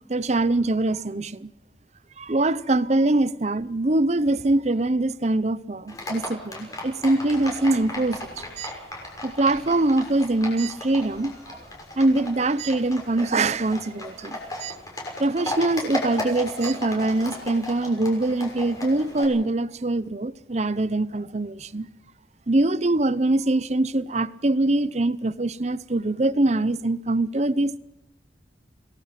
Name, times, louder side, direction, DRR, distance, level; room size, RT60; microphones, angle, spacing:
voice 1, 0.1-1.5 2.2-8.7 9.2-11.6 12.0-14.8 15.2-21.9 22.5-27.8, right 2 dB, 40° right, 0.7 m, -23 dB
Livestock farm animals working animals, 5.9-19.2, left 1 dB, 20° left, 6.2 m, -36 dB
28.5 x 18.5 x 5.9 m
head